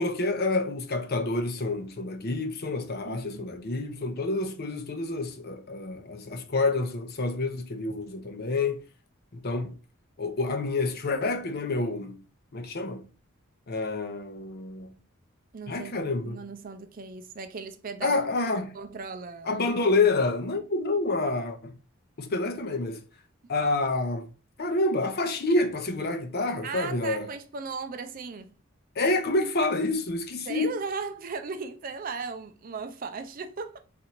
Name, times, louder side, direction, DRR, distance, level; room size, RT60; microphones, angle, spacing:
voice 1, 0.0-8.8 9.3-9.7 10.2-12.2 12.5-13.1 13.7-15.0 15.7-16.4 18.0-18.8 19.5-21.8 22.2-23.0 23.5-24.3 24.6-27.3 29.0-30.7, left 3 dB, 45° left, 0.6 m, -28 dB
voice 2, 3.0-3.5 15.5-15.9 16.2-18.2 18.7-19.5 26.6-28.5 30.4-33.8, right 4 dB, 40° right, 0.4 m, -37 dB
4.0 x 2.6 x 4.3 m
head